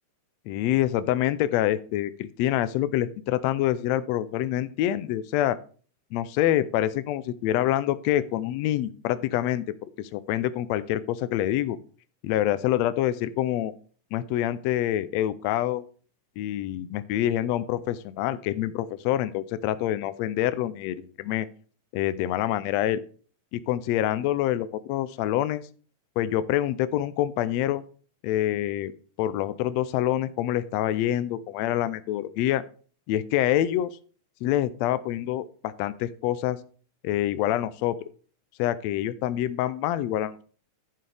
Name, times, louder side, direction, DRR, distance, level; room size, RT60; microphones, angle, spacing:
voice 1, 0.5-5.6 6.1-9.6 10.0-11.8 12.2-13.7 14.1-15.8 16.4-21.5 21.9-23.0 23.5-25.6 26.2-27.8 28.2-28.9 29.2-32.6 33.1-33.9 34.4-36.6 37.0-38.0 38.6-40.4, left 13 dB, 90° left, 14 dB, 1.5 m, -26 dB
14.5 x 6.8 x 3.4 m, 0.42 s
omnidirectional pair, 3.8 m